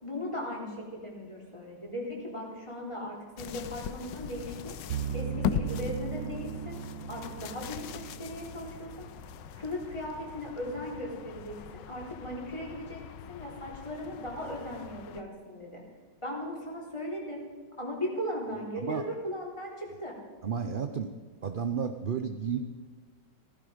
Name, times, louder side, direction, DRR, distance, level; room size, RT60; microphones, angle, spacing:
voice 1, 0.0-6.8 7.1-9.1 9.5-15.8 16.2-17.4 17.8-20.2, equal, 15° left, -2 dB, 3.8 m, -38 dB
sound 1, 3.4-15.2, left 9 dB, 85° left, 1.4 m, -40 dB
sound 2, 4.9-10.0, right 8 dB, 75° right, 1.4 m, -38 dB
voice 2, 20.4-21.1 21.4-22.6, right 6 dB, 45° right, 7 dB, 0.7 m, -32 dB
16.0 x 15.0 x 5.1 m, 1.6 s
omnidirectional pair, 1.9 m